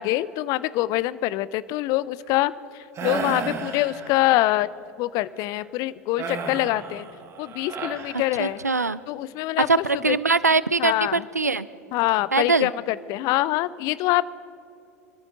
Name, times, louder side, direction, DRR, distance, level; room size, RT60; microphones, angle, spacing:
voice 1, 0.0-2.5 3.0-4.7 5.0-7.1 7.4-8.6 9.1-9.7 10.1-10.2 10.8-11.2 11.9-14.2, left 16 dB, 45° left, 18 dB, 0.5 m, -24 dB
sound 1, 3.0-4.5 6.2-8.8, right 5 dB, 35° right, 1.5 m, -33 dB
voice 2, 8.4-9.0 9.6-11.7 12.3-12.7, right 4 dB, 90° right, 19 dB, 0.4 m, -22 dB
23.0 x 13.5 x 3.7 m, 2.7 s
figure-of-eight pair, 80°, 9 cm